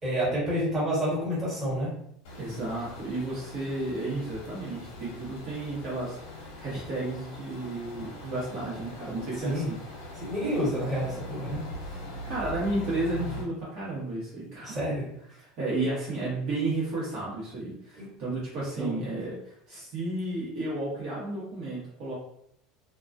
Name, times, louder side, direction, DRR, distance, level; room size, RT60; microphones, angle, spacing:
voice 1, 0.0-1.9 9.4-9.7 10.2-11.6 14.6-15.0 18.0-18.1 18.8-18.9, equal, 20° right, -7 dB, 1.3 m, -29 dB
sound 1, 2.2-13.4, left 1 dB, 75° left, 0.8 m, -41 dB
voice 2, 2.4-9.8 11.9-14.8 15.6-22.2, right 2 dB, 55° right, -7 dB, 0.9 m, -33 dB
2.2 x 2.2 x 2.5 m, 0.72 s
supercardioid pair, 140°, 0 cm